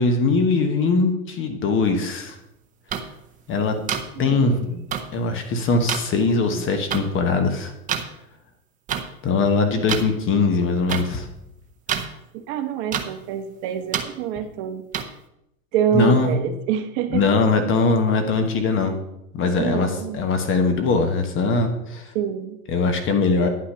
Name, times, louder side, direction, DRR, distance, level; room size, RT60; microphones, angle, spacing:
voice 1, 0.0-2.4 3.5-3.8 4.2-4.6 5.1-7.7 9.2-11.3 15.9-16.3 17.1-19.0 19.3-22.1 22.7-23.5, left 4 dB, 30° left, 6 dB, 1.2 m, -21 dB
sound 1, 2.9-3.0 3.9-4.0 4.9-5.0 5.9-6.0 6.9-7.0 7.9-8.0 8.9-9.0 9.9-10.0 10.9-11.0 11.9-12.1 12.9-13.0 13.9-14.0 14.9-15.0, right 8 dB, 20° right, 0.7 m, -25 dB
voice 2, 4.2-4.8 12.3-14.8 15.7-17.3 19.6-20.2 22.1-22.6, right 9 dB, 40° right, 7 dB, 1.1 m, -26 dB
10.0 x 5.8 x 5.6 m, 0.85 s
hypercardioid pair, 120°, 44 cm